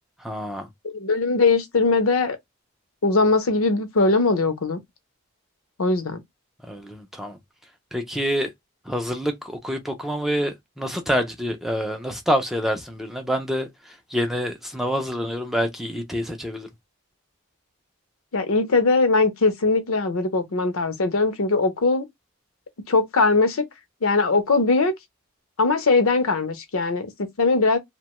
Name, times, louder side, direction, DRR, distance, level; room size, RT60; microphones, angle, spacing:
voice 1, 0.2-0.7 6.7-7.4 7.9-8.5 8.9-16.7, equal, ahead, 0.4 m, -27 dB
voice 2, 0.8-2.4 3.0-4.8 5.8-6.2 18.3-22.0 22.9-23.6 24.0-24.9 25.6-27.1 27.4-27.8, left 3 dB, 70° left, 0.6 m, -20 dB
2.8 x 2.2 x 2.9 m
head